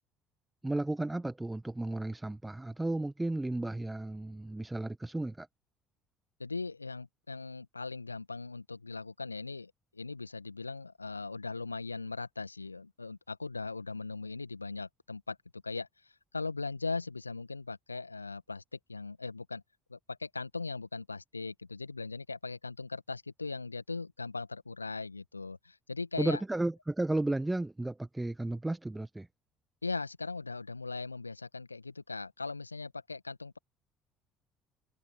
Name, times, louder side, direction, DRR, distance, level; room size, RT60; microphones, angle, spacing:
voice 1, 0.6-5.5 26.2-29.3, right 2 dB, 10° right, 1.4 m, -33 dB
voice 2, 6.4-18.6 18.9-19.6 19.9-26.4 29.8-33.6, left 3 dB, 85° left, 1.8 m, -39 dB
figure-of-eight pair, 55°, 0 cm